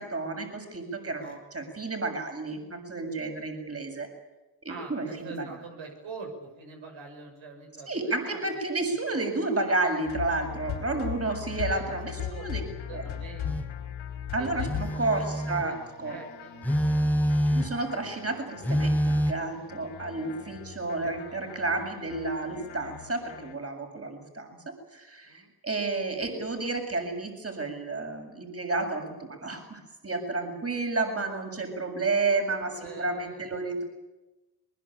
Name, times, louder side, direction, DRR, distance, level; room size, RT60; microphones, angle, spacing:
voice 1, 0.0-4.1 4.6-5.5 7.9-12.6 12.9-13.0 14.3-16.2 17.5-33.8, right 3 dB, 30° right, 5 dB, 7.2 m, -31 dB
voice 2, 4.7-8.4 8.9-9.2 11.8-12.6 12.9-13.5 14.4-15.8 16.0-16.7 20.4-20.5 21.0-21.4 25.2-25.5 32.6-33.5, right 4 dB, 75° right, 2 dB, 6.7 m, -45 dB
sound 1, 10.1-23.6, left 9 dB, 85° left, 5.5 m, -39 dB
Telephone, 13.4-13.7 14.6-15.7 16.6-17.9 18.6-19.3, equal, 5° left, 2.1 m, -26 dB
22.0 x 21.5 x 9.0 m, 1.1 s
supercardioid pair, 65°, 47 cm